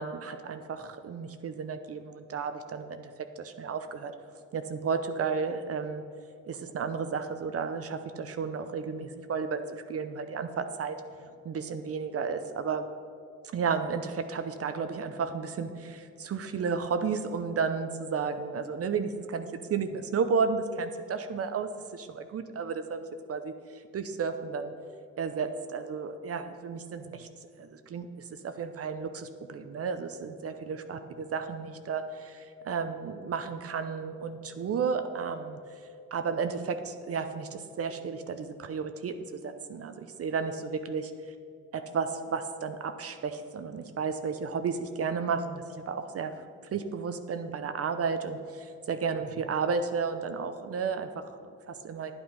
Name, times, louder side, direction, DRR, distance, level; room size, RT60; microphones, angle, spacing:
voice 1, 0.0-3.1 3.4-4.1 4.5-6.1 6.5-11.0 11.4-12.9 13.5-23.0 23.3-24.7 25.2-27.3 27.6-28.1 28.4-31.0 31.3-35.6 36.1-41.1 41.7-46.4 46.7-52.1, right 5 dB, 50° right, 8 dB, 0.7 m, -33 dB
10.0 x 8.8 x 5.4 m, 2.4 s
cardioid pair, 90°, 30 cm